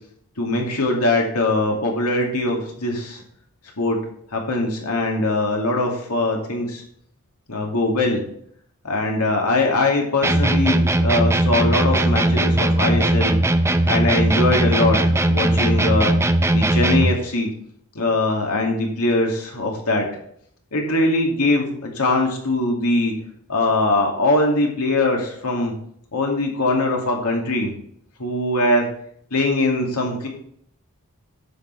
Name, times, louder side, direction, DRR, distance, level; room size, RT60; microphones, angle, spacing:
voice 1, 0.4-3.2 3.8-4.0 4.3-6.8 7.5-8.2 8.8-13.4 13.8-15.0 15.3-16.1 16.5-17.5 17.9-20.1 20.7-23.1 23.5-25.7 26.1-27.7 28.2-28.9 29.3-30.3, left 2 dB, 85° left, 0 dB, 2.4 m, -21 dB
sound 1, 10.2-17.2, right 1 dB, 10° right, 0.5 m, -18 dB
10.0 x 6.4 x 4.7 m, 0.67 s
head